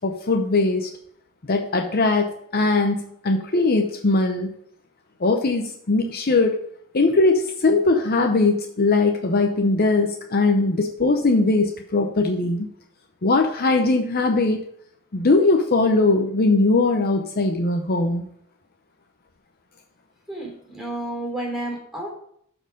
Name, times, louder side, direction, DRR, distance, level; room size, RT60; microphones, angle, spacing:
voice 1, 0.0-0.9 1.4-4.5 5.2-6.6 6.9-12.7 13.2-14.6 15.1-18.2, left 3 dB, 45° left, 4 dB, 0.7 m, -20 dB
voice 2, 20.3-22.1, right 1 dB, ahead, 0 dB, 3.3 m, -31 dB
12.5 x 4.5 x 5.0 m, 0.68 s
head